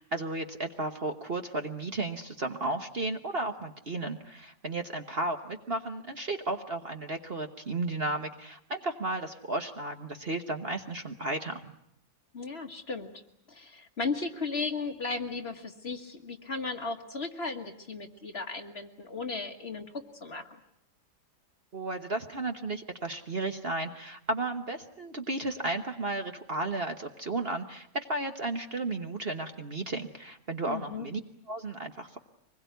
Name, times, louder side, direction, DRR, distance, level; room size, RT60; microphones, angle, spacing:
voice 1, 0.0-11.7 21.7-31.2 31.5-32.2, right 2 dB, 40° right, 6 dB, 1.3 m, -34 dB
voice 2, 12.3-13.1 13.5-20.5 30.6-31.1, left 4 dB, 40° left, 5 dB, 1.7 m, -35 dB
24.5 x 21.0 x 9.3 m, 0.73 s
omnidirectional pair, 1.8 m